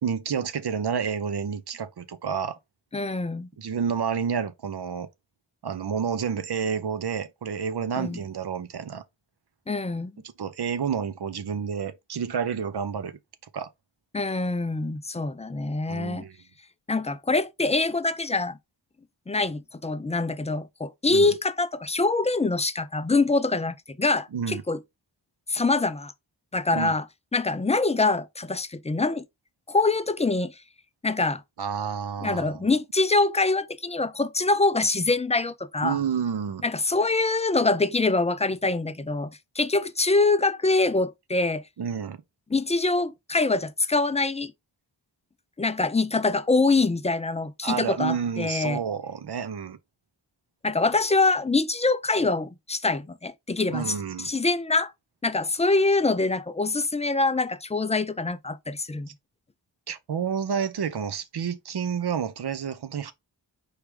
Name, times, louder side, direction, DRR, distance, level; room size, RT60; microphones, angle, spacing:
voice 1, 0.0-2.6 3.6-5.1 5.6-9.0 10.4-13.2 13.5-13.7 15.9-16.4 21.1-21.3 24.3-24.6 26.7-26.9 31.6-32.6 35.8-36.6 41.8-42.2 47.6-49.8 53.7-54.3 59.9-63.1, right 7 dB, 60° right, 0.6 m, -29 dB
voice 2, 2.9-3.5 8.0-8.2 9.7-10.1 14.1-16.3 16.9-18.6 19.3-24.8 25.5-26.1 26.5-27.1 27.3-29.2 29.7-30.6 31.0-31.4 32.2-36.0 36.6-41.6 42.5-44.5 45.6-48.8 50.6-54.9 55.2-59.1, left 3 dB, 15° left, 0.3 m, -24 dB
4.8 x 3.2 x 3.1 m
wide cardioid pair, 95°, 45 cm